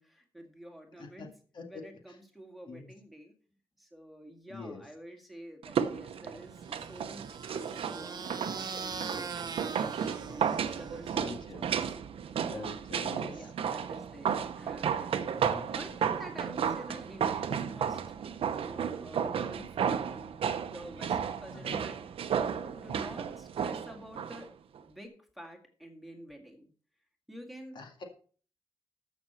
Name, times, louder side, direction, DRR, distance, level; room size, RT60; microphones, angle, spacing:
voice 1, 0.0-1.3 1.7-3.3 3.8-8.3 8.7-12.0 13.1-15.3 15.7-18.0 18.6-20.3 20.6-22.0 22.5-24.5 24.8-26.7 27.3-27.8, equal, ahead, 3 dB, 2.0 m, -49 dB
voice 2, 4.5-4.8 11.1-11.7 12.5-13.5 15.3-15.7 21.5-21.8 27.8-28.0, left 3 dB, 55° left, 2 dB, 2.0 m, -44 dB
sound 1, 5.6-24.4 24.7-24.8, right 7 dB, 75° right, 0.9 m, -33 dB
sound 2, 6.6-11.2, right 5 dB, 45° right, 1.0 m, -41 dB
14.0 x 6.3 x 4.3 m, 0.42 s
wide cardioid pair, 160°, 10 cm